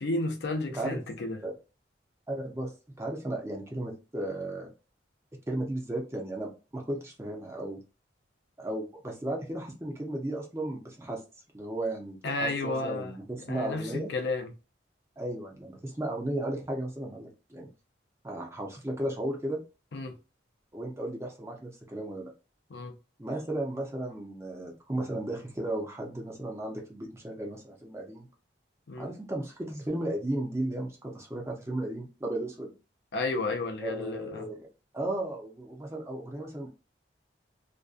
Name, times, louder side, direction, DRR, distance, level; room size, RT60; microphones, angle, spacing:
voice 1, 0.0-1.4 12.2-13.1 13.5-14.5 19.9-20.2 22.7-22.9 28.9-29.1 33.1-34.4, left 2 dB, 65° left, 0.5 m, -32 dB
voice 2, 2.3-2.7 3.0-4.7 5.5-7.8 8.6-11.2 11.5-14.1 15.2-17.7 18.2-19.6 20.7-22.3 23.2-28.3 29.0-32.7 33.8-34.6 34.9-36.7, right 1 dB, 15° right, 0.6 m, -35 dB
2.6 x 2.2 x 2.4 m
head